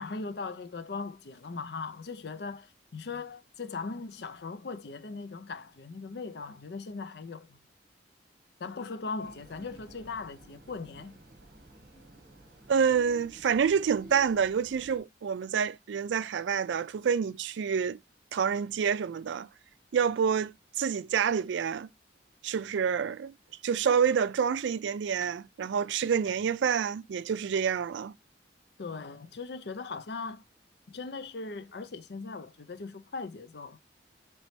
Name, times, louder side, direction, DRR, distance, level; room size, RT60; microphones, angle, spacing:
voice 1, 0.0-7.6 8.6-11.2 28.8-30.4 30.9-33.8, left 4 dB, 65° left, 0.5 m, -39 dB
sound 1, 9.2-15.0, right 1 dB, 50° right, 1.0 m, -53 dB
voice 2, 12.7-18.0 18.3-19.5 19.9-21.9 22.4-23.3 23.6-28.1, right 7 dB, 80° right, 0.3 m, -28 dB
4.2 x 3.0 x 3.1 m
head